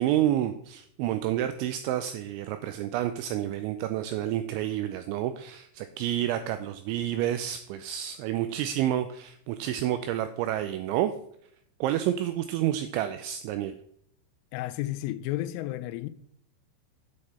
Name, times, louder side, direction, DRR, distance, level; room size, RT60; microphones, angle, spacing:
voice 1, 0.0-11.1 11.8-13.8, right 12 dB, 85° right, 2.7 m, -29 dB
voice 2, 14.5-16.1, left 15 dB, 85° left, 3.1 m, -32 dB
8.6 x 7.8 x 4.2 m
omnidirectional pair, 5.8 m